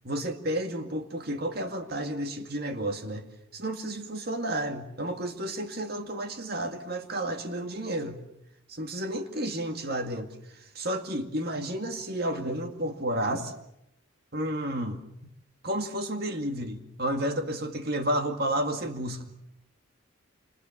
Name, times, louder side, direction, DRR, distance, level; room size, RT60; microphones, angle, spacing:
voice 1, 0.1-3.3 3.5-8.2 8.7-10.3 10.5-13.5 14.3-15.0 15.6-19.2, right 1 dB, 50° right, 5 dB, 2.2 m, -31 dB
29.0 x 27.5 x 7.4 m, 0.83 s
head